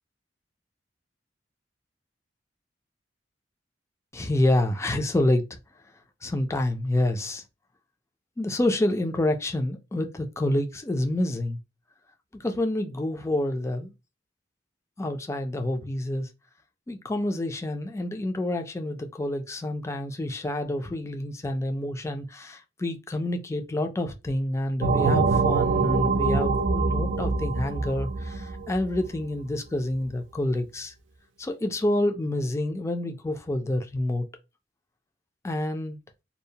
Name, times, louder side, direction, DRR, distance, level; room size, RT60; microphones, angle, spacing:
voice 1, 4.1-5.5 6.2-7.4 8.4-11.6 12.4-13.9 15.0-16.3 16.9-30.9 31.4-34.3 35.4-36.0, left 1 dB, 15° left, 0.4 m, -28 dB
sound 1, 24.8-29.2, right 4 dB, 90° right, 0.4 m, -24 dB
2.6 x 2.0 x 2.7 m
head